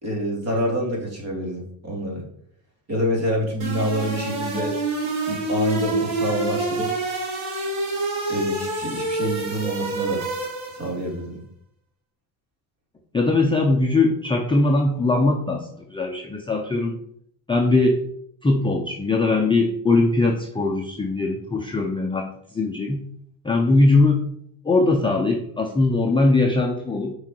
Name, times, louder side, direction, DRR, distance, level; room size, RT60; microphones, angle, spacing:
voice 1, 0.0-2.2 2.9-4.7 5.3-6.9 8.3-10.2 10.7-11.4, equal, 35° right, -2 dB, 2.7 m, -26 dB
sound 1, 3.6-11.0, right 2 dB, 85° right, 2.4 m, -27 dB
voice 2, 13.1-17.0 17.5-18.0 18.4-23.0 23.4-24.2 24.6-27.1, left 2 dB, 10° left, 1 dB, 0.6 m, -20 dB
6.3 x 4.8 x 4.5 m, 0.67 s
cardioid pair, 130°, 47 cm